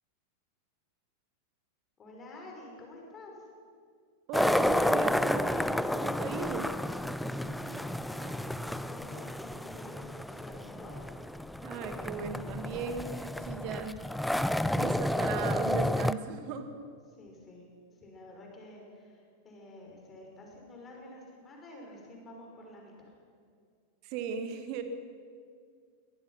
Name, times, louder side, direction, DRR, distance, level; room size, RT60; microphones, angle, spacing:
voice 1, 2.0-3.3 7.2-11.0 17.1-17.6 18.0-22.9, left 1 dB, 25° left, 0 dB, 6.0 m, -49 dB
sound 1, 4.3-16.1, left 1 dB, ahead, 0.5 m, -31 dB
voice 2, 4.3-6.7 11.6-14.0 14.5-16.7 24.0-24.8, right 6 dB, 45° right, 8 dB, 1.9 m, -37 dB
23.0 x 19.0 x 5.9 m, 2.1 s
figure-of-eight pair, 90°, 0 cm